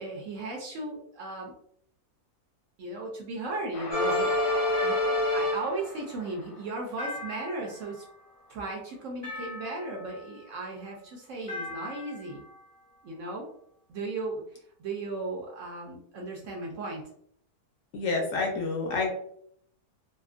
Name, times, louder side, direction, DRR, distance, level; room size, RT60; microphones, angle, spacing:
voice 1, 0.0-1.5 2.8-8.0 8.5-12.4 13.0-13.5 13.9-14.4 14.8-17.0, right 2 dB, 65° right, -1 dB, 0.8 m, -36 dB
Train, 3.7-8.1, left 2 dB, 85° left, 0.5 m, -42 dB
sound 1, 3.9-5.9 7.0-7.9 9.2-10.2 11.5-12.4, left 1 dB, 25° left, 0.6 m, -29 dB
voice 2, 17.9-19.1, left 3 dB, 65° left, 1 dB, 0.9 m, -28 dB
2.9 x 2.4 x 2.4 m, 0.66 s
omnidirectional pair, 1.6 m